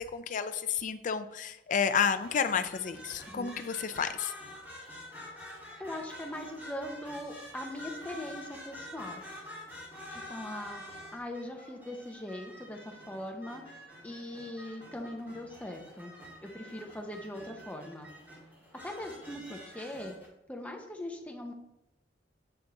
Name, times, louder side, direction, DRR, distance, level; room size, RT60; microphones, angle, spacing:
voice 1, 0.0-4.3, left 7 dB, 45° left, 10 dB, 0.4 m, -31 dB
sound 1, 2.1-20.3, left 1 dB, 10° right, 2.1 m, -48 dB
voice 2, 5.8-9.2 10.1-10.8 11.1-16.1 16.4-18.1 18.8-20.1 20.5-21.5, left 1 dB, 10° left, 2 dB, 0.7 m, -41 dB
7.9 x 3.5 x 3.8 m, 0.90 s
head